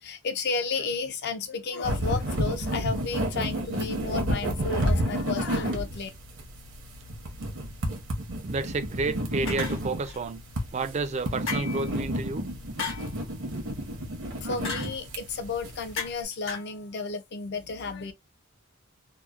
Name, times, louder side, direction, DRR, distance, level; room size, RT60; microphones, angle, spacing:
voice 1, 0.0-6.1 14.4-18.1, left 4 dB, 55° left, 0.5 m, -32 dB
sound 1, 1.8-16.1, equal, 65° right, 0.8 m, -31 dB
voice 2, 8.4-10.4 10.7-12.5, right 3 dB, 35° right, 0.4 m, -30 dB
sound 2, 9.5-10.2 11.5-11.9 12.8-13.1 14.6-15.0 16.0-16.2 16.5-16.7, left 5 dB, 70° left, 1.1 m, -34 dB
2.8 x 2.0 x 2.3 m
head